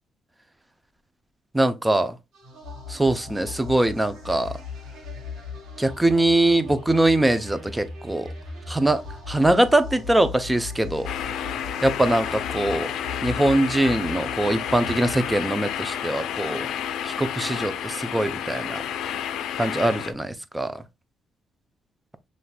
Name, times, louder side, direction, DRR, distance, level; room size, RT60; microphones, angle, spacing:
voice 1, 1.5-2.2 2.9-4.6 5.8-8.3 8.7-9.0 9.3-11.1 11.8-12.9 13.2-16.7 17.0-18.8 19.6-20.8, right 1 dB, 10° right, 0.5 m, -22 dB
sound 1, 2.3-16.0, left 4 dB, 85° right, 2.0 m, -38 dB
sound 2, 11.0-20.1, left 9 dB, 80° left, 0.4 m, -31 dB
5.6 x 3.2 x 2.3 m
cardioid pair, 90°, 0 cm